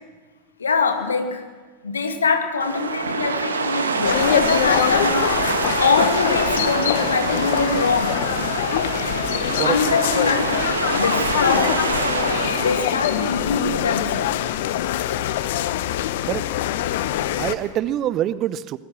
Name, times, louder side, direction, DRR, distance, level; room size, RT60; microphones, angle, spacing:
voice 1, 0.6-1.5 1.8-5.5 5.8-8.2 9.6-11.9 12.6-14.4, left 4 dB, 75° left, 6 dB, 2.2 m, -23 dB
sound 1, 2.6-13.8, right 4 dB, 75° right, 1.7 m, -25 dB
sound 2, 4.0-17.5, left 12 dB, 60° left, 1.1 m, -24 dB
voice 2, 17.4-18.8, right 12 dB, 40° right, 18 dB, 0.8 m, -25 dB
25.0 x 20.5 x 6.3 m, 1.4 s
figure-of-eight pair, 80°, 0 cm